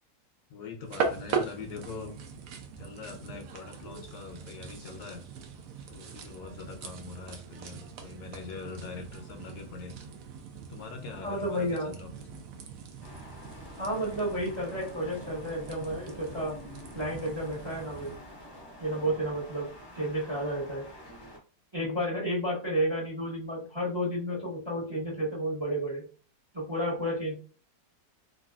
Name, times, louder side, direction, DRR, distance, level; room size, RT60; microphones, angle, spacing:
voice 1, 0.5-2.2 2.8-5.2 5.9-9.9 10.7-12.5, left 4 dB, 75° left, 3 dB, 1.1 m, -43 dB
sound 1, 0.8-18.2, right 5 dB, 70° right, 0.8 m, -40 dB
voice 2, 11.2-11.9 13.8-16.5 16.9-18.2 18.8-19.7 19.9-20.8 21.7-26.0 26.5-27.4, equal, 20° right, -5 dB, 0.8 m, -31 dB
sound 2, 13.0-21.4, left 1 dB, 30° left, 0.5 m, -48 dB
3.0 x 2.6 x 2.3 m, 0.38 s
omnidirectional pair, 1.9 m